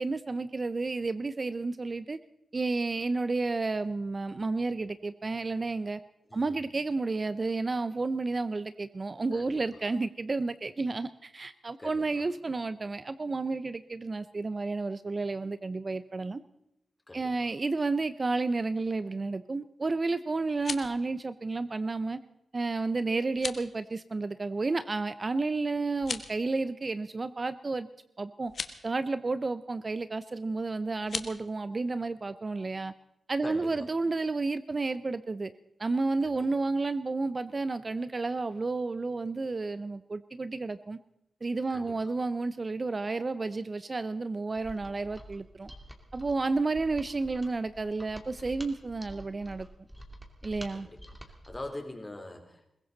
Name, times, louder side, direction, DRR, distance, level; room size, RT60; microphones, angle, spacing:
voice 1, 0.0-2.2 2.5-6.0 6.3-16.4 17.1-22.2 22.5-27.9 28.2-28.5 28.8-32.9 33.3-35.5 35.8-41.0 41.4-45.7 46.1-49.7 50.4-50.9, right 3 dB, 40° right, 14 dB, 0.6 m, -31 dB
voice 2, 6.3-6.6 9.3-9.6 11.8-12.3 17.1-17.3 33.4-33.9 36.2-36.5 41.7-42.1 50.7-51.0 51.3-52.7, left 1 dB, 20° left, 4 dB, 3.2 m, -43 dB
sound 1, 20.4-21.0 23.3-23.7 25.9-26.4 28.4-28.8 31.0-31.3, left 5 dB, 65° left, 1.2 m, -37 dB
Mechanisms, 44.6-51.8, right 1 dB, 10° right, 2.6 m, -48 dB
21.5 x 16.0 x 4.0 m, 0.81 s
cardioid pair, 65°, 0 cm